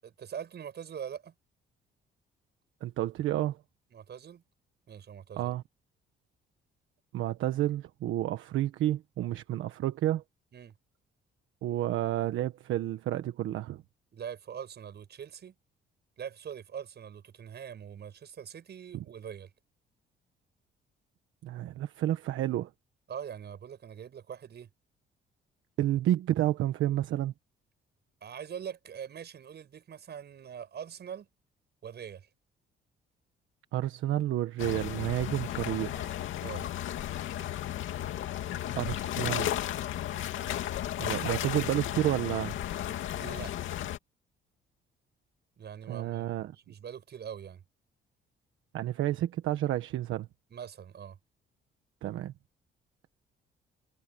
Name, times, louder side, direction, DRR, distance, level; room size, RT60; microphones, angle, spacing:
voice 1, 0.0-1.3 3.9-4.4 4.9-5.5 10.5-10.7 14.1-15.5 16.2-19.5 23.1-24.7 28.2-31.3 31.8-32.3 36.4-36.7 43.2-43.7 45.6-47.6 50.5-51.2, right 8 dB, 55° right, 7.8 m, -43 dB
voice 2, 2.8-3.6 5.4-5.6 7.1-10.2 11.6-13.8 21.4-22.7 25.8-27.3 33.7-36.2 38.7-39.6 41.0-42.6 45.9-46.5 48.7-50.3 52.0-52.3, right 13 dB, 85° right, 1.3 m, -30 dB
sound 1, 34.6-44.0, left 12 dB, 80° left, 2.4 m, -34 dB
cardioid pair, 90°, 20 cm